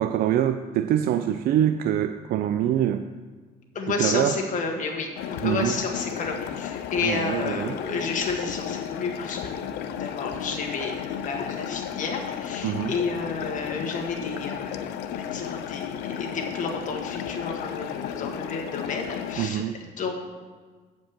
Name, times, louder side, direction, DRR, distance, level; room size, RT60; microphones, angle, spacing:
voice 1, 0.0-3.0 4.0-4.4 5.4-5.7 7.0-7.7 12.6-12.9 19.4-19.7, right 11 dB, 65° right, 9 dB, 0.4 m, -24 dB
voice 2, 3.7-20.1, left 4 dB, 50° left, 1 dB, 1.7 m, -31 dB
sound 1, 5.2-19.5, left 9 dB, 80° left, 0.6 m, -34 dB
8.3 x 5.2 x 7.5 m, 1.5 s
cardioid pair, 110°, 17 cm